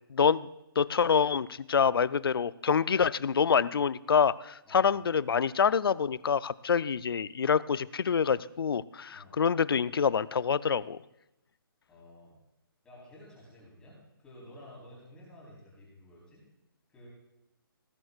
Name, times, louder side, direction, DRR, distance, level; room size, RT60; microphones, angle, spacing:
voice 1, 0.1-0.5 0.8-11.0, left 6 dB, 80° left, 17 dB, 0.5 m, -26 dB
voice 2, 11.9-12.3 12.8-16.4 16.9-17.1, left 1 dB, 5° left, -6 dB, 4.0 m, -52 dB
18.5 x 12.0 x 2.4 m, 0.90 s
hypercardioid pair, 165°, 12 cm